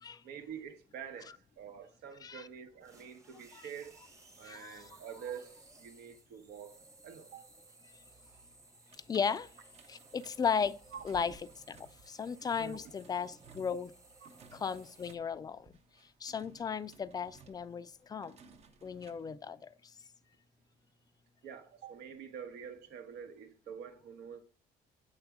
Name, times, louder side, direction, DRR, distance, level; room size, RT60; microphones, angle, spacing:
voice 1, 0.2-4.1 4.4-6.8 7.0-7.5 10.9-11.0 12.6-12.8 14.2-14.3 21.4-24.4, right 7 dB, 75° right, 0.9 m, -47 dB
sound 1, 2.8-15.2, right 2 dB, 20° right, 0.9 m, -60 dB
voice 2, 4.4-4.9 9.1-9.5 9.9-10.8 11.0-11.4 11.7-11.8 12.1-13.9 14.5-15.7 16.2-18.4 18.8-19.7, left 6 dB, 25° left, 0.3 m, -35 dB
sound 2, 8.9-19.3, right 4 dB, 40° right, 0.7 m, -60 dB
8.0 x 3.4 x 3.6 m
cardioid pair, 110°, 17 cm